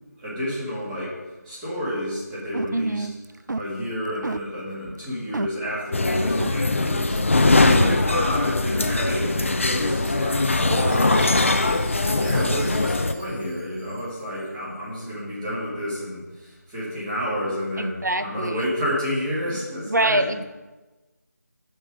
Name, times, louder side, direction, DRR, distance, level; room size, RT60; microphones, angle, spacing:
voice 1, 0.2-1.1 1.5-3.1 3.6-7.1 7.6-11.5 11.9-16.2 16.7-20.2, equal, 10° right, -10 dB, 2.3 m, -30 dB
sound 1, 2.5-2.9 3.2-3.7 4.2-4.4 4.8-5.0 5.3-5.5 6.0-6.1 6.4-6.5, right 3 dB, 90° right, 0.4 m, -29 dB
voice 2, 2.7-3.2 7.6-8.0 10.7-10.8 11.1-11.4 17.8-18.7 19.9-20.4, right 1 dB, 75° right, 9 dB, 0.8 m, -25 dB
sound 2, 5.9-13.1, left 2 dB, 45° left, 0.6 m, -21 dB
Chime, 10.4-14.6, equal, 40° right, 3.1 m, -46 dB
13.0 x 4.6 x 5.0 m, 1.2 s
figure-of-eight pair, 165°, 10 cm